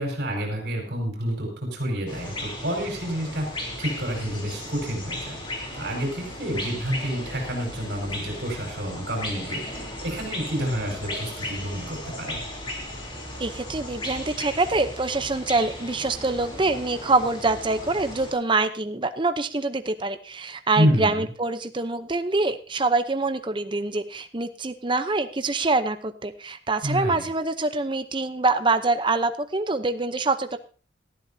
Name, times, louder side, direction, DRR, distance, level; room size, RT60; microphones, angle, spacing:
voice 1, 0.0-5.4 5.7-12.4 20.8-21.3 26.8-27.3, equal, 60° right, 1 dB, 5.0 m, -29 dB
sound 1, 2.1-18.3, left 1 dB, 25° left, 3.4 m, -36 dB
voice 2, 13.4-30.6, right 3 dB, 25° right, 9 dB, 0.7 m, -25 dB
18.5 x 13.5 x 2.8 m, 0.37 s
head